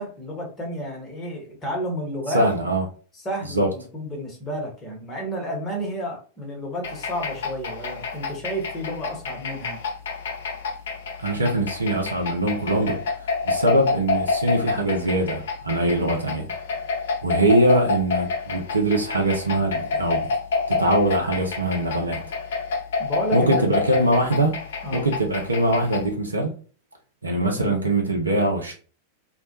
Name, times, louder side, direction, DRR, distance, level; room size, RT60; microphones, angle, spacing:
voice 1, 0.0-2.5 3.1-9.8 23.0-23.7 24.8-25.1, equal, 20° left, 0.9 m, -31 dB
voice 2, 2.3-2.8 3.5-3.7 11.2-13.0 13.4-16.5 17.2-20.3 20.7-22.3 23.3-24.6 24.9-26.5 27.2-28.7, right 1 dB, 80° right, 0.4 m, -22 dB
sound 1, 6.8-26.1, left 4 dB, 60° left, 0.4 m, -28 dB
2.1 x 2.1 x 2.8 m
figure-of-eight pair, 90°, 0 cm